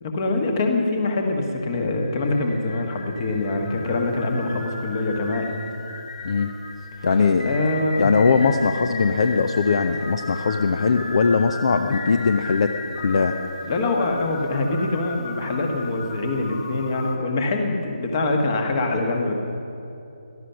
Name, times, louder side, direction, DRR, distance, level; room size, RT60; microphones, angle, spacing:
voice 1, 0.0-5.5 7.0-7.1 7.4-8.1 13.7-19.3, left 2 dB, 25° left, 3 dB, 1.6 m, -24 dB
sound 1, 1.4-17.2, left 3 dB, 60° left, 2.1 m, -36 dB
voice 2, 7.0-7.6 8.0-12.7 13.0-13.3, left 5 dB, 45° left, 7 dB, 0.6 m, -20 dB
17.0 x 13.0 x 5.9 m, 2.9 s
figure-of-eight pair, 150°, 4 cm